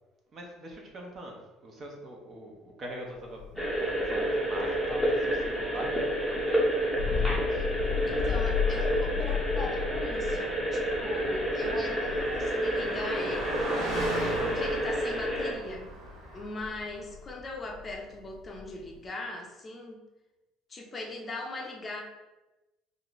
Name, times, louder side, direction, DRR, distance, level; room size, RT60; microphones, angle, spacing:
voice 1, 0.3-1.4 1.6-3.4 3.8-7.6 8.0-8.3 8.6-8.8, right 1 dB, 35° right, 1 dB, 0.7 m, -43 dB
Thunder, 3.3-19.1, left 7 dB, 75° left, 0.7 m, -37 dB
sound 1, 3.6-15.5, right 1 dB, 5° right, 0.8 m, -29 dB
voice 2, 8.1-13.6 14.4-15.9 16.3-20.0 20.7-22.0, left 2 dB, 25° left, 0 dB, 0.5 m, -39 dB
Car passing by, 10.9-16.8, right 1 dB, 70° right, 1.3 m, -38 dB
3.7 x 2.5 x 3.1 m, 1.1 s
cardioid pair, 135°, 0 cm